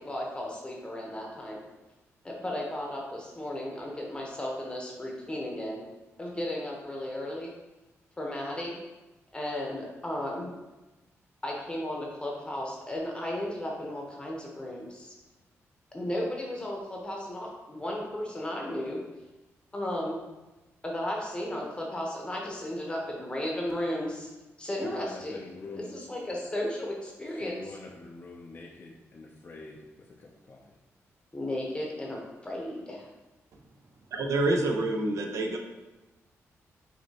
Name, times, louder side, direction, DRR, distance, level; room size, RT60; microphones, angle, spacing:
voice 1, 0.0-1.6 2.2-5.8 6.2-7.5 8.2-8.8 9.3-10.5 11.4-15.1 15.9-19.0 19.7-20.2 20.8-24.3 24.6-25.4 25.7-27.8 31.3-33.1, left 1 dB, 20° left, -1 dB, 0.9 m, -34 dB
voice 2, 24.8-25.9 27.3-30.6, left 3 dB, 40° left, -1 dB, 0.5 m, -45 dB
voice 3, 34.1-35.6, right 2 dB, 70° right, 3 dB, 0.6 m, -27 dB
6.0 x 2.9 x 2.8 m, 1.1 s
cardioid pair, 95°, 5 cm